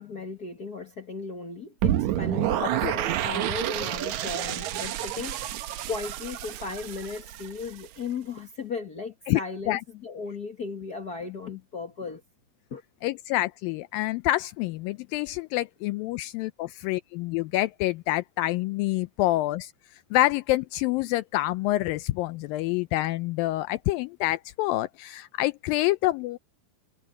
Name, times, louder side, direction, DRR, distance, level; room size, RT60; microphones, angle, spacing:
voice 1, 0.0-5.6 5.9-12.2 12.7-12.8, left 4 dB, 65° left, 0.9 m, -36 dB
sound 1, 1.8-7.9, right 12 dB, 70° right, 1.9 m, -29 dB
voice 2, 13.0-19.7 20.1-26.4, left 17 dB, 80° left, 2.3 m, -27 dB
omnidirectional pair, 4.2 m